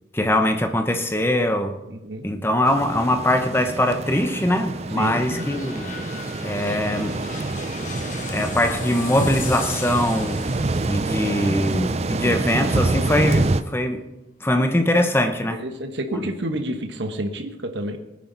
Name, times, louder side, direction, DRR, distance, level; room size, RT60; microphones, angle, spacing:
voice 1, 0.1-1.8 2.2-5.9 6.4-7.2 8.3-10.5 10.9-14.0 14.4-15.6 16.1-16.3, left 1 dB, 10° left, 6 dB, 0.9 m, -22 dB
voice 2, 1.9-2.2 4.9-5.4 15.5-18.0, right 1 dB, 70° right, 6 dB, 1.2 m, -29 dB
sound 1, 2.6-13.6, right 2 dB, 35° right, 0.5 m, -27 dB
sound 2, 4.0-13.6 14.1-14.2, left 4 dB, 40° left, 1.3 m, -38 dB
20.0 x 9.8 x 4.0 m, 1.0 s
head